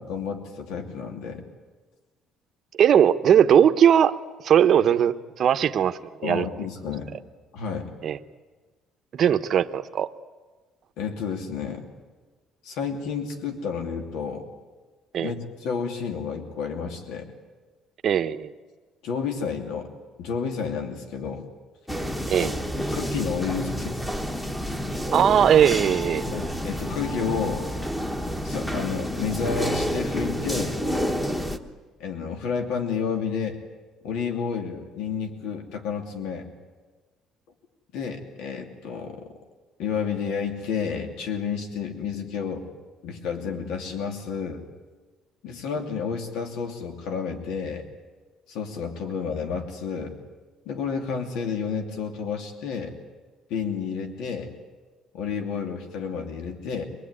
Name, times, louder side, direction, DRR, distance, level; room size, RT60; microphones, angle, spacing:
voice 1, 0.0-1.4 6.2-7.1 7.5-7.9 11.0-11.9 12.6-14.5 15.2-17.3 19.0-19.9 20.2-21.5 22.4-24.0 26.3-27.7 28.4-30.8 32.0-33.6 34.0-36.5 37.9-39.3 39.8-42.6 43.0-44.7 45.4-47.8 48.5-50.2 50.7-52.9 53.5-54.5 55.1-56.8, left 6 dB, 85° left, 5 dB, 2.8 m, -30 dB
voice 2, 2.8-4.1 4.4-6.5 8.0-8.2 9.1-10.1 15.1-15.3 18.0-18.5 22.3-22.5 25.1-26.2, right 9 dB, 40° right, 10 dB, 0.8 m, -19 dB
sound 1, 21.9-31.6, equal, 5° left, 1.1 m, -29 dB
25.5 x 19.5 x 9.7 m, 1.4 s
cardioid pair, 175°, 0 cm